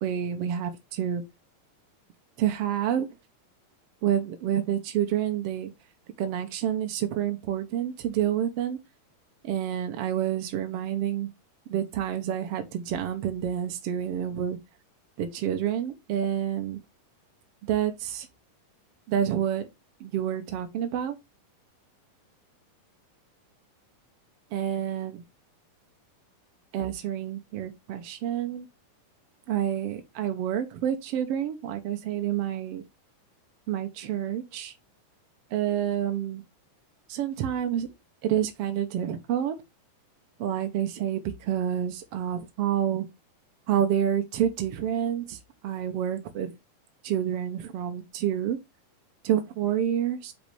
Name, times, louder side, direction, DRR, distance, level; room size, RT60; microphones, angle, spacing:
voice 1, 0.0-1.2 2.4-3.1 4.0-5.7 6.2-8.8 9.4-11.3 11.7-14.6 15.2-16.8 17.7-18.3 19.1-19.7 20.0-21.2 24.5-25.2 26.7-28.7 29.5-32.8 33.7-34.7 35.5-36.4 37.1-37.9 38.2-39.5 40.4-43.1 43.7-46.5 47.0-48.6 49.2-50.3, right 10 dB, 80° right, 1.3 m, -28 dB
7.3 x 5.2 x 3.3 m
omnidirectional pair, 3.9 m